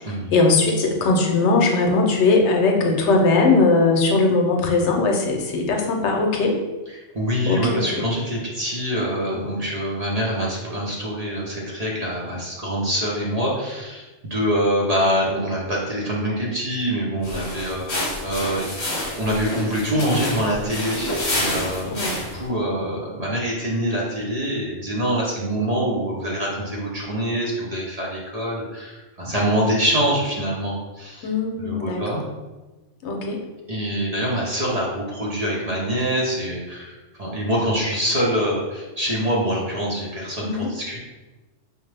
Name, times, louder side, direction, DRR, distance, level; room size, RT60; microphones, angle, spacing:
voice 1, 0.3-6.5 7.5-8.0 21.9-22.2 31.2-32.0 33.0-33.4 40.4-40.7, left 3 dB, 80° left, 1 dB, 0.9 m, -19 dB
voice 2, 6.9-31.3 31.6-32.2 33.7-41.0, equal, 40° right, -4 dB, 0.7 m, -25 dB
sound 1, 17.2-22.5, left 1 dB, 45° left, 0.9 m, -28 dB
4.9 x 2.1 x 3.2 m, 1.2 s
omnidirectional pair, 1.2 m